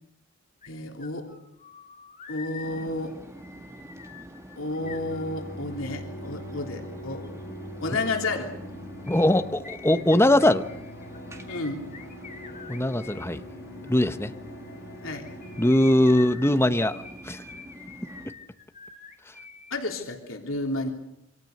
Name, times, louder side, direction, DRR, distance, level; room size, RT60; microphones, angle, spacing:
sound 1, 0.6-0.7 1.0-5.8 9.0-13.3 15.1-19.7 20.0-20.1, left 6 dB, 40° left, 2.7 m, -45 dB
voice 1, 0.7-1.3 2.3-3.2 4.6-7.2 7.8-8.5 11.5-11.9 15.0-15.3 19.7-20.9, left 2 dB, 85° left, 2 dB, 3.4 m, -31 dB
sound 2, 2.6-18.3, right 1 dB, 15° right, 2.2 m, -45 dB
sound 3, 4.8-15.7, equal, 60° left, 4.2 m, -42 dB
voice 2, 9.1-10.6 12.7-13.4 13.9-14.3 15.6-17.4, left 1 dB, 10° left, 9 dB, 1.0 m, -21 dB
27.5 x 23.5 x 6.7 m, 0.81 s
head